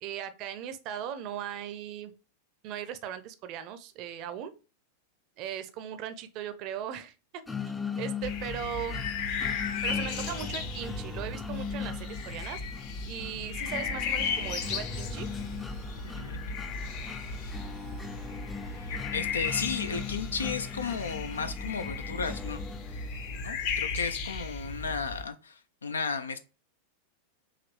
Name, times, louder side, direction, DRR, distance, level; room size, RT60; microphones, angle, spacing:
voice 1, 0.0-2.1 2.6-4.5 5.4-7.4 8.0-9.0 9.8-12.6 13.1-15.3, right 9 dB, 40° right, 0.6 m, -38 dB
sound 1, 7.5-23.4, left 6 dB, 10° left, 0.5 m, -40 dB
sound 2, 8.2-25.2, left 5 dB, 45° left, 0.9 m, -35 dB
sound 3, 13.5-20.2, equal, 90° left, 2.4 m, -57 dB
voice 2, 16.0-16.6 18.7-22.6 23.4-26.4, left 5 dB, 70° left, 0.4 m, -34 dB
4.9 x 3.0 x 3.2 m
figure-of-eight pair, 90°, 0 cm